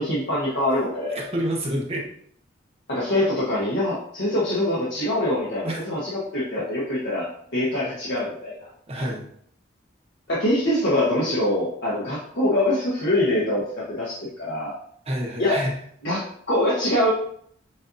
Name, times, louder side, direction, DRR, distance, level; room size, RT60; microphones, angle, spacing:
voice 1, 0.0-1.3 2.9-8.7 10.3-14.8 15.4-15.6 16.0-17.1, left 1 dB, 60° left, -8 dB, 1.1 m, -24 dB
voice 2, 1.1-2.1 5.6-5.8 8.9-9.3 15.0-15.7, right 1 dB, 35° right, -2 dB, 0.9 m, -28 dB
7.3 x 2.7 x 2.6 m, 0.65 s
head